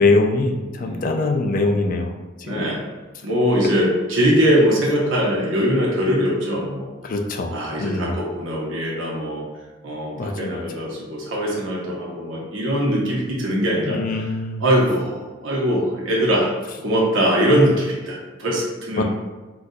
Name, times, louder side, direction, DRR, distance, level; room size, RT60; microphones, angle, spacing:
voice 1, 0.0-2.1 2.4-2.7 7.0-8.2 10.2-10.6 13.8-14.6 19.0-19.1, left 3 dB, 40° left, 4 dB, 0.3 m, -22 dB
voice 2, 0.8-1.1 2.4-2.8 3.2-6.9 7.5-9.5 9.8-14.3 14.6-16.5 16.8-19.0, equal, 70° right, -4 dB, 0.7 m, -21 dB
3.8 x 2.2 x 2.7 m, 1.2 s
head